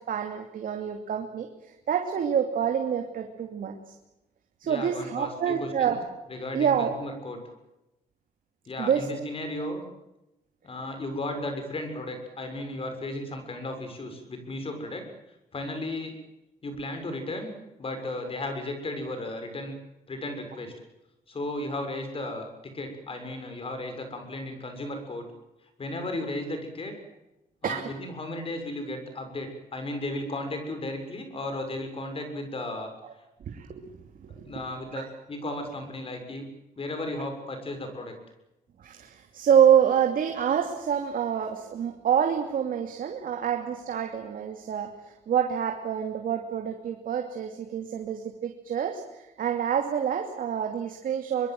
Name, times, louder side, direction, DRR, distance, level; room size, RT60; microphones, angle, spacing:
voice 1, 0.0-1.5 1.9-3.9 4.6-6.0 6.5-6.9 8.8-9.1 27.6-27.9 33.0-33.1 33.5-33.8 34.4-34.5 34.9-35.0 38.8-51.5, right 8 dB, 70° right, 4 dB, 2.8 m, -27 dB
voice 2, 4.6-6.0 6.3-7.4 8.6-9.8 10.6-15.0 15.5-16.1 16.6-17.5 17.8-19.7 20.1-20.7 21.3-25.2 25.8-27.0 27.6-32.9 34.4-36.5 36.8-38.1, left 1 dB, 40° left, 6 dB, 6.8 m, -35 dB
24.5 x 22.5 x 7.9 m, 0.95 s
cardioid pair, 120°, 15 cm